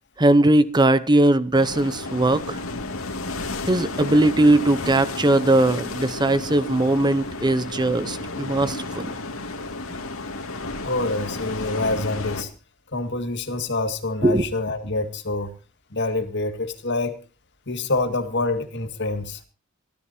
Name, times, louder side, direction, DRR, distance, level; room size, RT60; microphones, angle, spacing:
voice 1, 0.2-2.6 3.7-9.1 14.2-14.5, right 1 dB, 20° right, 0.8 m, -19 dB
sound 1, 1.5-12.4, left 2 dB, 90° left, 2.3 m, -32 dB
voice 2, 10.8-12.5 12.9-15.5 15.9-17.2 17.7-19.4, left 2 dB, 60° left, 2.0 m, -26 dB
26.5 x 13.0 x 2.8 m
head